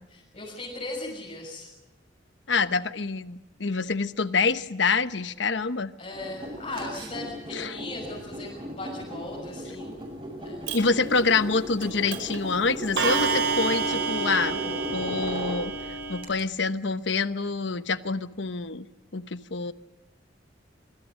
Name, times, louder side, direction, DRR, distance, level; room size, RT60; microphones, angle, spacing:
voice 1, 0.1-1.7 6.0-10.0 10.4-10.8, left 2 dB, 35° left, -6 dB, 6.5 m, -38 dB
voice 2, 2.5-5.9 7.5-7.8 10.7-15.7 16.1-18.9 19.1-19.7, left 4 dB, 80° left, 12 dB, 1.0 m, -26 dB
sound 1, 6.1-16.4, right 1 dB, 30° right, 7.4 m, -37 dB
Clock, 10.7-10.8 11.8-11.9 12.1-12.4 13.0-16.2, right 4 dB, 90° right, 5.0 m, -28 dB
26.0 x 24.5 x 6.4 m, 0.95 s
head